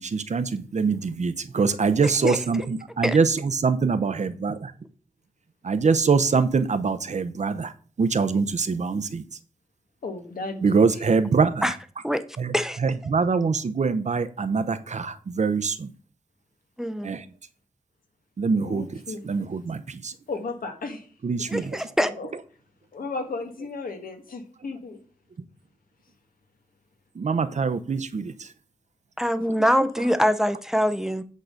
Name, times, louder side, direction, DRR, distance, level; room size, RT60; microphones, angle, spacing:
voice 1, 0.0-4.7 5.6-7.7 8.0-9.2 10.6-11.7 12.4-12.5 12.8-15.9 17.0-17.2 18.4-20.1 21.2-21.8 27.2-28.5, right 5 dB, 55° right, 0.7 m, -24 dB
voice 2, 2.0-2.4 3.0-3.2 11.6-11.7 12.0-12.2 12.5-12.8 16.8-17.1 21.5-22.1 29.2-31.2, equal, 5° right, 0.6 m, -23 dB
voice 3, 10.0-11.0 18.5-19.2 20.3-21.1 21.5-21.7 22.0-22.3 22.9-25.0 29.6-29.7, left 3 dB, 85° left, 1.6 m, -35 dB
8.4 x 3.9 x 6.5 m
wide cardioid pair, 100°, 14 cm